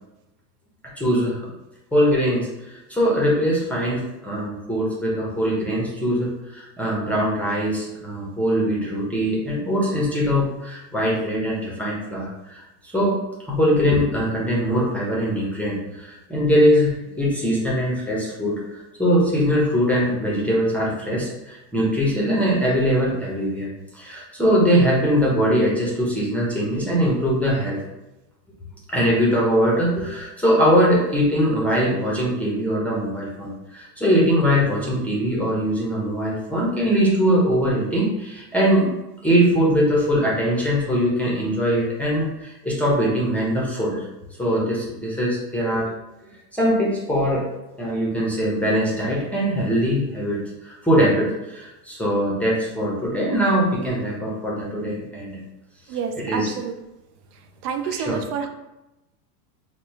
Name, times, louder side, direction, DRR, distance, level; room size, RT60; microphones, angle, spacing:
voice 1, 1.0-1.4 1.9-27.8 28.9-38.9 39.2-44.0 44.4-45.9 46.5-47.5 47.8-55.4 55.9-56.5 57.8-58.2, equal, 5° left, -5 dB, 0.6 m, -22 dB
voice 2, 55.9-56.7 57.6-58.5, right 6 dB, 65° right, 5 dB, 0.6 m, -28 dB
4.2 x 2.0 x 3.0 m, 0.96 s
supercardioid pair, 115°, 50 cm